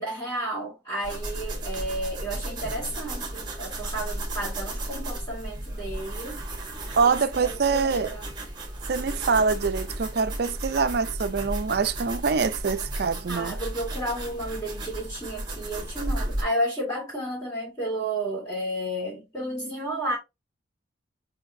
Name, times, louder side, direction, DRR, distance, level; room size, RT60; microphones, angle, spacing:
voice 1, 0.0-6.4 7.0-7.1 7.4-8.3 13.3-20.2, right 1 dB, 20° left, 2.0 m, -32 dB
sound 1, 1.0-16.4, right 1 dB, 20° right, 1.3 m, -34 dB
voice 2, 7.0-8.1 8.9-13.6, right 5 dB, 55° right, 0.4 m, -25 dB
4.8 x 3.7 x 2.6 m
head